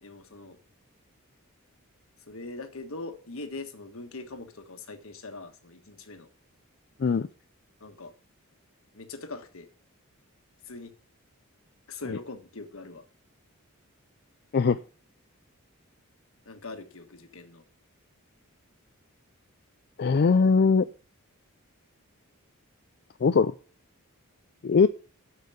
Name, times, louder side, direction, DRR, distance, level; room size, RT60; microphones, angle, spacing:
voice 1, 0.0-0.6 2.3-6.3 7.8-8.1 8.9-9.7 10.6-10.9 11.9-13.0 16.4-17.6, left 3 dB, 65° left, 6 dB, 1.5 m, -41 dB
voice 2, 20.0-20.9 23.2-23.5 24.6-24.9, left 5 dB, 50° left, 11 dB, 0.4 m, -20 dB
9.2 x 5.6 x 7.8 m, 0.40 s
head